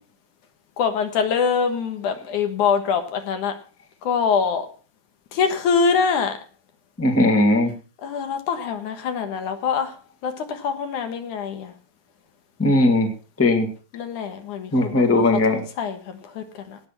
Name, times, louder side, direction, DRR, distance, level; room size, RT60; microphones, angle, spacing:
voice 1, 0.8-3.6 4.0-4.7 5.3-6.4 8.0-10.0 10.2-11.7 13.9-16.8, left 6 dB, 65° left, 7 dB, 2.8 m, -24 dB
voice 2, 7.0-7.7 12.6-13.1 13.4-13.7 14.7-15.6, left 2 dB, 5° left, 4 dB, 1.3 m, -18 dB
18.5 x 6.2 x 5.7 m, 0.37 s
omnidirectional pair, 3.9 m